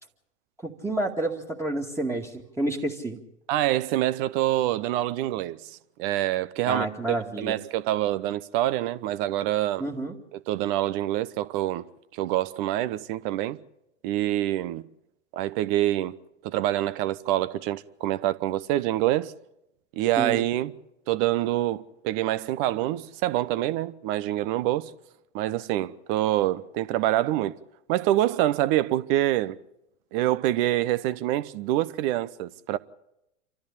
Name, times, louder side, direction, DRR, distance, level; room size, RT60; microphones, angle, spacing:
voice 1, 0.6-3.2 6.7-7.6 9.8-10.1 20.2-20.4, right 2 dB, 5° right, 2.1 m, -29 dB
voice 2, 3.5-9.8 10.3-11.8 12.1-13.6 14.0-14.8 15.3-16.2 16.4-19.3 20.0-20.7 21.1-24.9 25.3-27.6 27.9-29.6 30.1-32.8, right 14 dB, 45° right, 1.0 m, -26 dB
27.5 x 14.0 x 8.5 m
hypercardioid pair, 100°, 37 cm